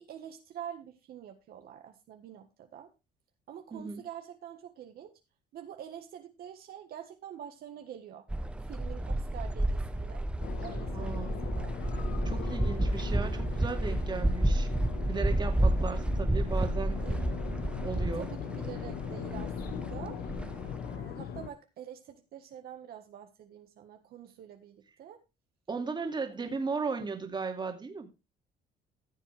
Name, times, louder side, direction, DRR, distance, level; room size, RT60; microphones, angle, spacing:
voice 1, 0.0-2.9 3.5-5.1 5.5-8.2 8.6-10.2 10.6-11.7 15.8-16.1 17.0-17.2 18.1-20.2 20.9-25.2 26.5-26.7, right 9 dB, 65° right, 1.5 m, -46 dB
voice 2, 3.7-4.0 10.9-11.4 12.2-14.7 15.1-17.1 17.8-18.3 25.7-28.1, right 4 dB, 25° right, 2.4 m, -36 dB
sound 1, 8.3-21.0, right 1 dB, 5° right, 0.8 m, -31 dB
sound 2, 10.4-21.5, left 8 dB, 70° left, 1.4 m, -40 dB
14.5 x 7.4 x 3.4 m
cardioid pair, 110°, 17 cm